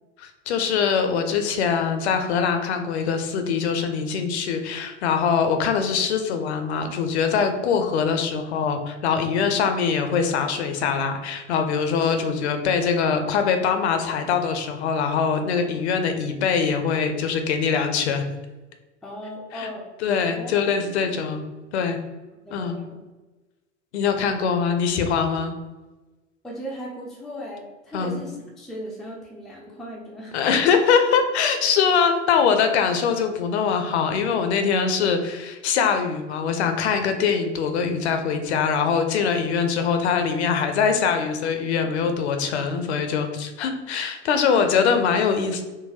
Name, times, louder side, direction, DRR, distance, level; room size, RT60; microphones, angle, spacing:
voice 1, 0.2-18.3 19.5-19.7 20.0-21.4 21.7-22.0 22.5-22.8 23.9-25.5 27.9-28.2 30.3-45.6, left 6 dB, 60° left, 6 dB, 0.6 m, -23 dB
voice 2, 19.0-19.9 20.4-21.0 22.4-23.0 26.4-30.4 40.1-40.2, equal, ahead, -2 dB, 0.3 m, -37 dB
3.8 x 2.2 x 2.8 m, 1.2 s
figure-of-eight pair, 85°, 37 cm